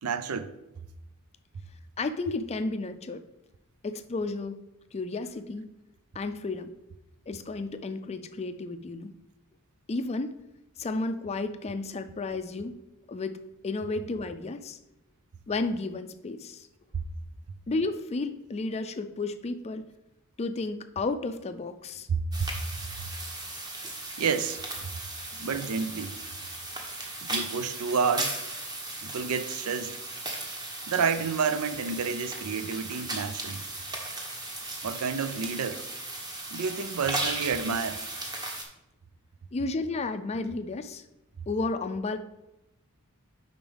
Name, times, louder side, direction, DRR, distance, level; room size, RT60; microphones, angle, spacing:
voice 1, 0.0-0.5 16.9-17.0 22.1-22.5 24.2-24.6 25.4-26.2 27.3-28.4 29.0-30.0 30.9-33.6 34.8-35.9 36.5-38.1, right 5 dB, 85° right, 0.5 m, -29 dB
voice 2, 2.0-3.2 3.8-4.6 4.9-5.7 6.1-6.7 7.3-9.1 9.9-10.3 10.8-12.7 13.1-13.3 13.6-14.8 15.5-16.7 17.7-19.8 20.4-22.1 39.5-41.0 41.5-42.2, left 3 dB, 30° left, 0.4 m, -32 dB
sound 1, 22.3-38.6, right 2 dB, 20° right, 1.0 m, -36 dB
7.1 x 5.2 x 3.4 m
head